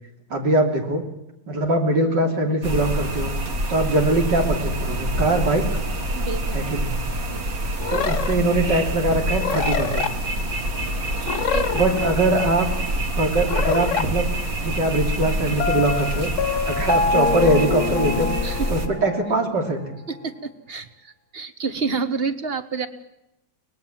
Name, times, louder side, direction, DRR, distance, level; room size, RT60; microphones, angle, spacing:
voice 1, 0.3-1.0 1.5-3.3 3.7-5.6 6.5-7.0 7.9-10.1 11.7-12.7 13.2-19.8, right 2 dB, 90° right, 3 dB, 3.8 m, -22 dB
sound 1, 2.6-18.9, right 1 dB, 55° right, 2.5 m, -26 dB
voice 2, 6.1-6.6 7.3-7.6 11.1-11.8 18.4-18.7 20.1-22.9, right 5 dB, 35° right, 11 dB, 1.5 m, -29 dB
sound 2, 7.8-8.3 9.4-10.1 11.2-12.3 13.5-14.1, left 7 dB, 50° left, 1.3 m, -26 dB
Piano, 15.6-19.5, left 5 dB, 65° left, 1.5 m, -25 dB
24.0 x 19.5 x 7.5 m, 0.86 s
omnidirectional pair, 1.8 m